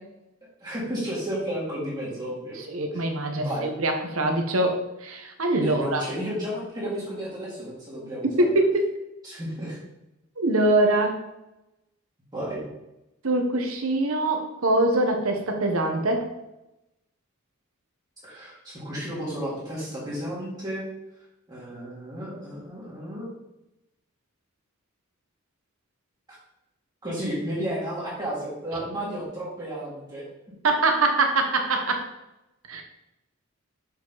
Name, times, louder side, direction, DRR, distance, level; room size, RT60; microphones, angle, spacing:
voice 1, 0.6-2.6 3.4-3.7 5.6-8.5 9.2-9.8 12.3-12.6 18.2-20.9 21.5-23.3 27.0-30.2, equal, 20° right, -8 dB, 2.2 m, -32 dB
voice 2, 2.7-6.0 8.4-8.9 10.4-11.2 13.2-16.3 30.6-32.0 32.7-32.8, right 2 dB, 75° right, 4 dB, 1.2 m, -23 dB
6.9 x 4.9 x 4.1 m, 0.92 s
head